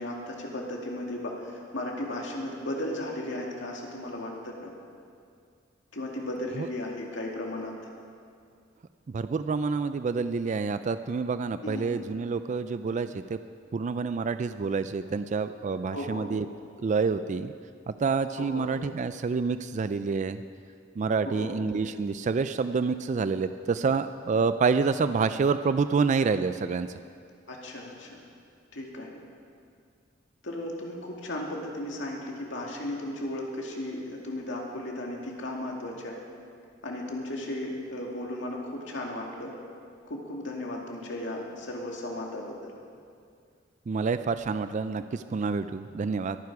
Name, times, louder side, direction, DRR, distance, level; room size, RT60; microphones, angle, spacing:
voice 1, 0.0-4.7 5.9-7.7 11.6-11.9 15.9-16.2 18.4-18.6 21.2-21.5 27.5-28.2 28.7-29.1 30.4-36.2 36.8-39.5 40.1-42.7, left 1 dB, 70° left, -1 dB, 2.4 m, -35 dB
voice 2, 9.1-13.4 13.7-16.5 16.8-17.5 17.9-20.4 21.0-26.9 43.9-46.4, right 4 dB, 40° right, 11 dB, 0.3 m, -28 dB
23.0 x 9.5 x 4.8 m, 2.3 s
head